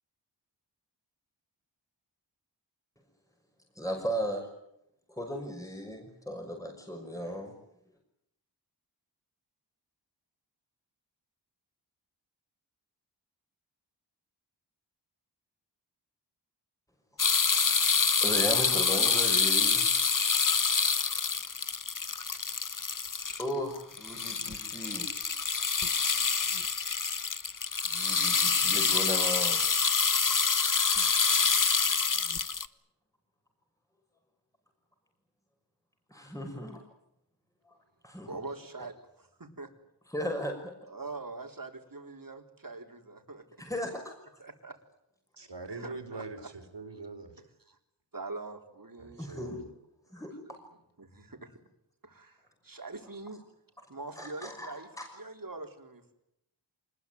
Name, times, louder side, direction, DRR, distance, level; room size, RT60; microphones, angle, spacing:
voice 1, 3.7-4.5 5.1-7.5 17.2-17.9 18.2-19.9 23.4-25.1 27.9-29.6 36.1-36.8 38.0-38.3 40.1-40.5 43.6-43.9 49.2-49.6 50.1-50.3 54.2-55.1, equal, 5° left, 1 dB, 6.0 m, -36 dB
sound 1, 17.2-23.5 23.8-32.7, left 5 dB, 45° left, 1.1 m, -27 dB
voice 2, 38.3-39.7 40.9-43.4 44.4-44.8 45.7-46.5 46.9-47.0 47.4-47.8 48.1-49.3 50.2-50.6 51.0-51.6 52.0-53.4 53.9-56.1, right 3 dB, 45° right, 4 dB, 4.0 m, -44 dB
voice 3, 45.4-47.3 49.0-49.7, right 3 dB, 70° right, 7 dB, 4.6 m, -43 dB
25.5 x 20.5 x 9.5 m, 0.81 s
wide cardioid pair, 60°, 45 cm